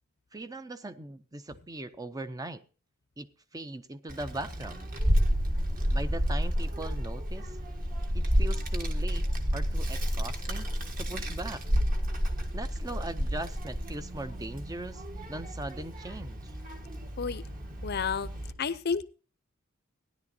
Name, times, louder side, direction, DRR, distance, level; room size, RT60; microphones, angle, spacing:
voice 1, 0.3-2.6 3.2-4.9 5.9-7.5 8.1-9.2 9.5-10.7 11.0-11.6 12.5-15.0 15.3-16.5, right 2 dB, 20° right, 11 dB, 0.5 m, -39 dB
Child speech kid speaking, 4.1-18.5, equal, 45° right, 1.5 m, -30 dB
voice 2, 17.8-18.3 18.6-19.0, left 6 dB, 50° left, 15 dB, 0.6 m, -30 dB
16.0 x 10.5 x 2.7 m, 0.36 s
head